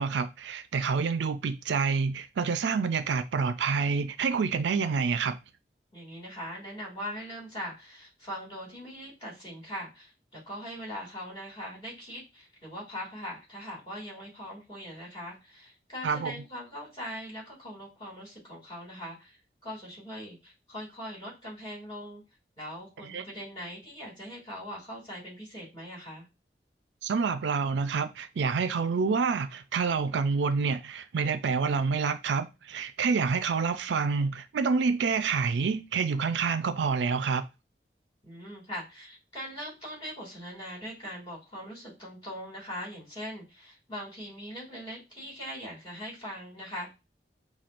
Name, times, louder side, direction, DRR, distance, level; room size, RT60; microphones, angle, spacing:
voice 1, 0.0-5.4 16.0-16.3 23.1-23.2 27.0-37.4, right 5 dB, 90° right, 0.4 m, -28 dB
voice 2, 5.9-22.2 22.6-26.2 38.2-46.9, equal, 25° left, 2.6 m, -41 dB
5.7 x 2.3 x 2.5 m
head